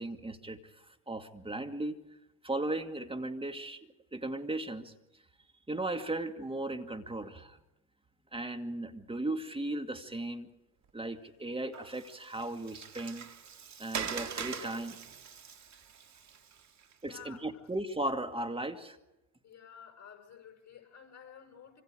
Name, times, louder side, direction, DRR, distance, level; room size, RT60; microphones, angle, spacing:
voice 1, 0.0-2.0 2.4-4.9 5.7-7.6 8.3-10.5 10.9-13.2 13.8-15.0 17.0-19.0, right 2 dB, 10° right, 6 dB, 2.2 m, -36 dB
Water, 11.7-17.1, right 7 dB, 35° right, 2.4 m, -42 dB
voice 2, 17.0-17.6 19.4-21.8, left 8 dB, 35° left, 4 dB, 6.6 m, -52 dB
26.0 x 25.5 x 5.0 m, 0.93 s
supercardioid pair, 90°, 48 cm